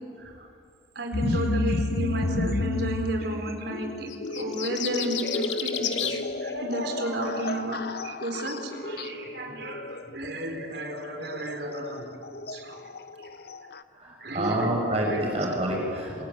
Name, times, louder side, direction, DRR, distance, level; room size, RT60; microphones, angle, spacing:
voice 1, 0.9-12.1 12.5-12.8 14.2-14.8 15.1-15.2, right 1 dB, 60° right, 3 dB, 4.4 m, -33 dB
sound 1, 1.1-13.8, left 2 dB, 55° left, 0.8 m, -32 dB
sound 2, 4.1-6.2, left 10 dB, 80° left, 2.0 m, -31 dB
voice 2, 14.0-16.2, right 1 dB, 35° right, -2 dB, 6.1 m, -28 dB
26.5 x 22.0 x 9.5 m, 2.4 s
head